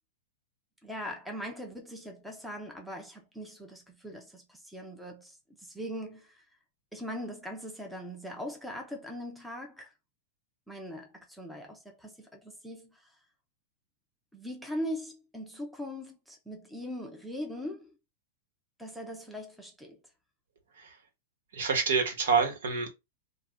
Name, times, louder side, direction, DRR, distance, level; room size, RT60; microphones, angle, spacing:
voice 1, 0.8-6.4 6.9-9.9 10.7-13.0 14.3-17.9 18.8-20.0, equal, ahead, 0.6 m, -40 dB
voice 2, 21.5-22.9, right 5 dB, 75° right, 1.1 m, -27 dB
2.6 x 2.2 x 3.5 m
supercardioid pair, 160°, 0 cm